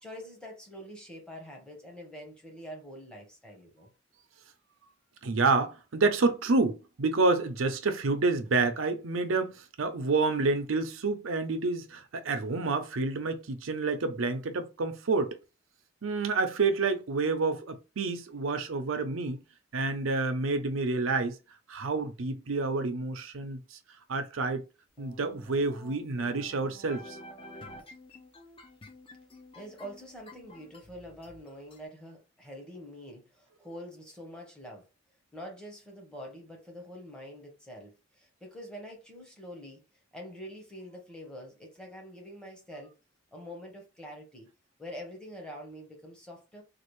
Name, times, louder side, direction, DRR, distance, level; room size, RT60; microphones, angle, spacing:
voice 1, 0.0-3.9 29.5-34.9 35.3-39.8 40.1-42.9 43.3-44.5 44.8-46.6, equal, 5° left, 1.1 m, -45 dB
voice 2, 5.2-15.4 16.0-19.4 19.7-21.4 21.7-23.6 24.1-24.6 25.0-27.2, right 3 dB, 85° right, 0.6 m, -28 dB
sound 1, 25.0-31.8, left 1 dB, 25° left, 0.6 m, -50 dB
3.3 x 2.4 x 3.1 m
head